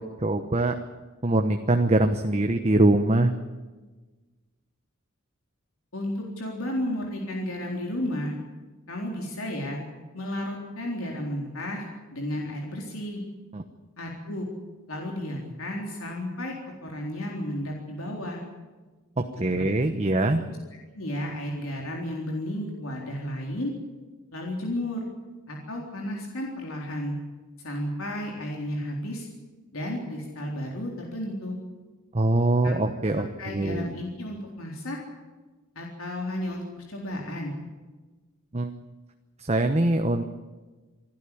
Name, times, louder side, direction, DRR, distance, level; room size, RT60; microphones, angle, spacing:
voice 1, 0.2-0.8 1.2-3.3 13.5-13.6 19.2-20.4 32.1-33.9 38.5-38.7 39.5-40.4, right 2 dB, 30° right, 6 dB, 1.0 m, -23 dB
voice 2, 5.9-8.3 8.9-9.8 10.1-13.2 14.0-14.5 14.9-16.5 16.8-18.4 19.5-19.6 20.5-20.6 20.9-23.7 24.3-25.1 25.5-27.2 27.6-29.3 29.7-31.6 32.6-32.7 33.4-35.0 35.8-37.5, left 1 dB, 75° left, 0 dB, 3.9 m, -33 dB
27.0 x 12.0 x 9.9 m, 1.3 s
head